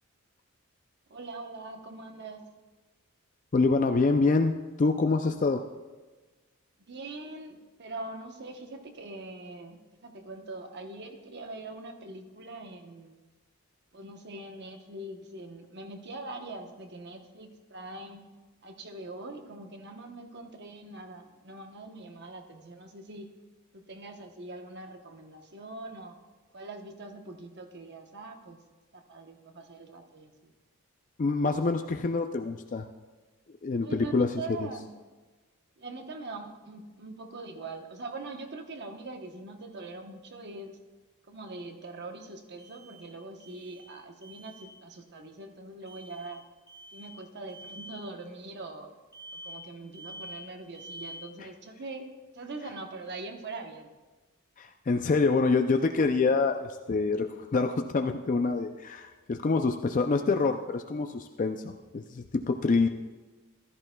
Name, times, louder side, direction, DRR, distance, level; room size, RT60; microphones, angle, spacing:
voice 1, 1.1-2.5 6.9-13.1 13.9-18.2 18.6-23.3 23.7-26.2 26.5-28.6 28.9-30.5 33.8-34.9 35.8-40.8 41.3-46.4 46.9-48.9 49.3-52.0 52.3-53.9, right 2 dB, 50° right, 5 dB, 0.9 m, -42 dB
voice 2, 3.5-5.7 31.2-32.9 33.6-34.4 54.6-62.9, left 3 dB, 35° left, 6 dB, 0.4 m, -26 dB
sound 1, 42.6-43.1 43.4-44.0 44.2-44.7 45.8-46.3 46.7-47.2 47.5-48.0 49.1-49.7 49.9-50.5 50.7-51.3, equal, 20° right, 3.6 m, -46 dB
14.5 x 13.0 x 2.2 m, 1.3 s
head